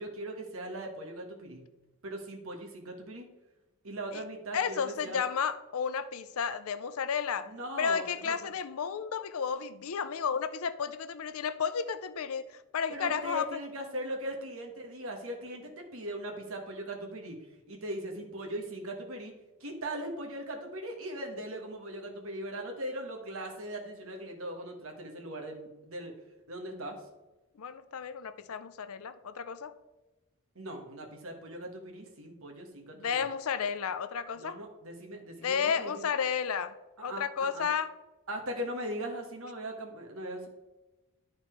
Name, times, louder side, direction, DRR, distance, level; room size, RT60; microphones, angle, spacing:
voice 1, 0.0-1.6 2.0-3.3 3.8-5.2 7.4-8.5 12.9-17.4 17.7-19.3 19.6-26.1 26.5-27.0 30.5-33.0 34.3-36.1 37.0-37.2 37.5-37.7 38.3-40.5, right 1 dB, 70° right, 1.4 m, -39 dB
voice 2, 4.5-7.5 7.8-13.4 27.6-29.7 32.9-34.6 35.4-36.7 37.0-37.9, left 6 dB, 75° left, 0.5 m, -32 dB
11.0 x 4.2 x 4.5 m
head